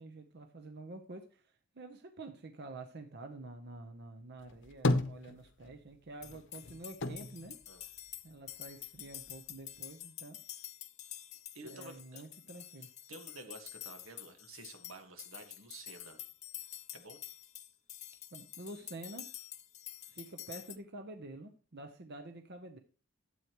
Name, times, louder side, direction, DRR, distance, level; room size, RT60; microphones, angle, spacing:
voice 1, 0.0-7.6 8.2-10.4 11.6-12.9 18.3-19.3 20.1-22.8, right 2 dB, 55° right, 6 dB, 0.8 m, -48 dB
sound 1, 4.4-5.9 6.2-8.6 8.9-9.8, left 2 dB, 60° left, 0.9 m, -35 dB
sound 2, 6.2-20.8, left 12 dB, 35° left, 0.6 m, -48 dB
voice 2, 11.5-12.2 13.1-16.2 16.9-17.2, right 2 dB, 85° right, 5 dB, 1.6 m, -51 dB
12.5 x 8.0 x 3.0 m, 0.40 s
head